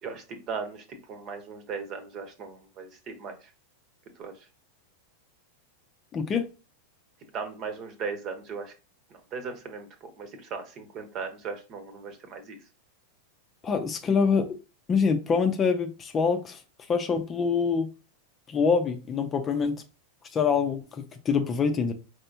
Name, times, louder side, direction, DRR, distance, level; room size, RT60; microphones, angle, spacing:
voice 1, 0.0-3.4 4.2-4.3 7.3-8.7 9.1-12.6, right 5 dB, 35° right, 1.2 m, -37 dB
voice 2, 6.1-6.5 13.6-14.5 14.9-16.6 16.9-17.9 18.5-19.8 20.3-21.9, left 5 dB, 25° left, 0.8 m, -25 dB
5.4 x 3.5 x 2.7 m
figure-of-eight pair, 90°, 0 cm